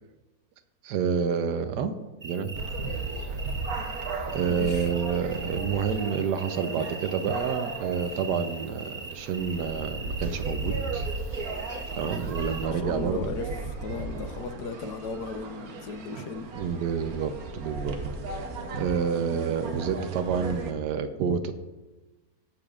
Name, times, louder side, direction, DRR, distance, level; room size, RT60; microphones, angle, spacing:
voice 1, 0.8-1.9 2.2-2.6 4.3-11.1 11.9-13.2 16.5-17.9 18.3-18.5 18.7-21.5, right 6 dB, 90° right, 9 dB, 1.3 m, -28 dB
sound 1, 2.2-12.7, right 3 dB, 10° right, 0.9 m, -41 dB
sound 2, 2.5-20.7, right 3 dB, 65° right, 1.3 m, -36 dB
voice 2, 4.5-4.9 12.7-13.5 13.8-16.5, left 5 dB, 80° left, 8 dB, 1.4 m, -36 dB
20.0 x 6.8 x 2.4 m, 1.1 s
omnidirectional pair, 1.7 m